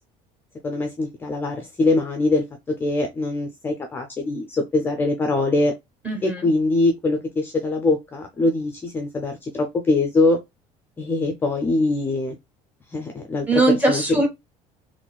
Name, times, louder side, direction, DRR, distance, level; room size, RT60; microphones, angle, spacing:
voice 1, 0.6-5.8 6.2-10.4 11.0-12.4 12.9-13.5 13.9-14.0, left 2 dB, 15° left, 0.4 m, -23 dB
voice 2, 6.0-6.5 13.5-14.3, right 2 dB, 10° right, 0.9 m, -20 dB
3.9 x 2.5 x 2.2 m
cardioid pair, 160°, 14 cm